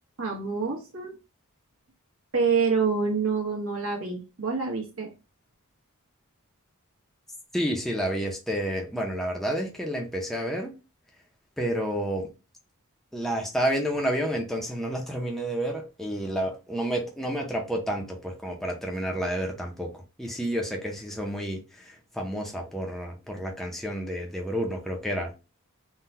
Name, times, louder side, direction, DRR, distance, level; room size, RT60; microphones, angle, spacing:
voice 1, 0.2-1.1 2.3-5.1, right 5 dB, 65° right, 1.1 m, -27 dB
voice 2, 7.5-10.7 11.6-12.3 13.1-25.4, equal, ahead, 0.5 m, -30 dB
3.7 x 2.2 x 2.7 m
head